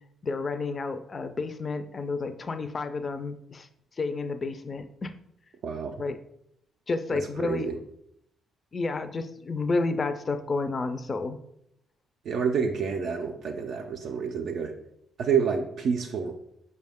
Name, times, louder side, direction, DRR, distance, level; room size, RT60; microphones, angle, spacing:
voice 1, 0.2-3.7 4.0-5.1 6.0-6.2 6.9-7.7 8.7-11.4, left 3 dB, 35° left, 9 dB, 0.3 m, -30 dB
voice 2, 5.6-5.9 7.1-7.8 12.2-14.7 15.2-16.3, right 6 dB, 70° right, 2 dB, 0.4 m, -28 dB
4.8 x 2.1 x 3.5 m, 0.75 s
cardioid pair, 90°, 0 cm